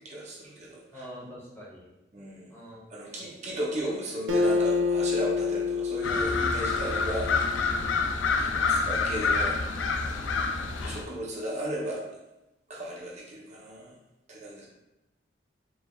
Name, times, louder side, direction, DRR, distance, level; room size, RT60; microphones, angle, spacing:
voice 1, 0.0-1.1 2.1-2.5 2.9-7.3 8.4-9.6 10.8-12.0 12.7-13.9 14.3-14.7, right 1 dB, 40° right, -4 dB, 0.7 m, -35 dB
voice 2, 0.9-1.9 2.5-2.8 3.2-3.3, equal, 15° left, -6 dB, 0.9 m, -45 dB
Acoustic guitar, 4.3-7.8, left 4 dB, 90° right, 0.5 m, -28 dB
sound 1, 6.0-11.0, left 4 dB, 80° left, 0.4 m, -27 dB
4.6 x 3.2 x 2.3 m, 0.97 s
head